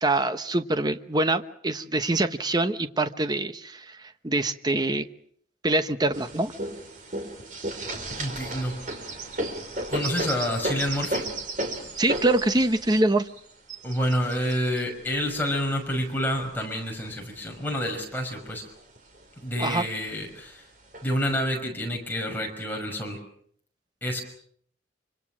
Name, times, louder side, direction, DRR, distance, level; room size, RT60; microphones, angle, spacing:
voice 1, 0.0-4.0 4.2-5.1 5.6-6.5 12.0-13.3 19.6-19.8, right 2 dB, 25° right, 10 dB, 1.1 m, -24 dB
sound 1, 6.1-16.4 17.0-18.0 18.4-18.5 18.8-19.5 20.2-20.3 20.9-21.4, right 2 dB, 45° right, 4.3 m, -34 dB
voice 2, 8.2-8.8 9.9-11.3 13.8-18.7 19.4-20.7 21.0-23.2 24.0-24.2, equal, 10° left, 1 dB, 5.8 m, -28 dB
26.5 x 25.5 x 6.3 m, 0.63 s
head